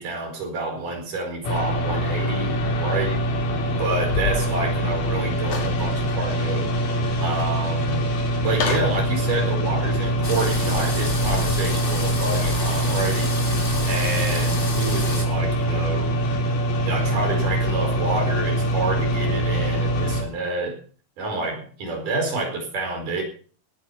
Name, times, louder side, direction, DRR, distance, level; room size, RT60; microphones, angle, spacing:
voice 1, 0.0-3.2 3.6-6.7 7.2-8.1 8.4-13.3 13.8-16.2 16.8-20.8 21.2-23.2, right 2 dB, 70° right, 3 dB, 6.3 m, -28 dB
sound 1, 1.4-20.2, right 1 dB, 75° left, 4.4 m, -23 dB
sound 2, 5.4-5.8 6.3-6.4 8.5-9.0, left 6 dB, 55° left, 3.0 m, -28 dB
sound 3, 10.2-15.2, left 2 dB, 20° left, 1.8 m, -31 dB
18.0 x 10.0 x 5.7 m, 0.42 s
omnidirectional pair, 3.8 m